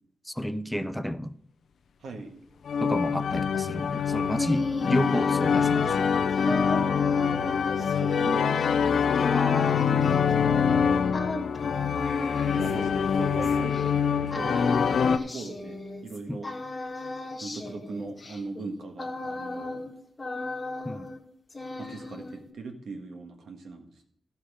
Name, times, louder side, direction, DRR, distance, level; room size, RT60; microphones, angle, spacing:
voice 1, 0.3-1.3 2.8-6.0 9.9-10.2 16.3-16.4 20.8-21.1, left 1 dB, 5° left, 0.5 m, -31 dB
voice 2, 2.0-2.4 4.7-4.8 6.7-9.6 12.5-14.8 15.1-15.8 16.0-16.5 17.4-19.8 21.8-24.1, right 3 dB, 85° right, 1.7 m, -40 dB
sound 1, 2.7-15.2, left 6 dB, 75° left, 0.5 m, -25 dB
Singing kid, 4.0-13.8 14.3-16.2 16.4-19.9 20.2-21.2 21.5-22.5, left 2 dB, 20° left, 1.5 m, -35 dB
14.5 x 5.9 x 5.0 m
wide cardioid pair, 160°, 0 cm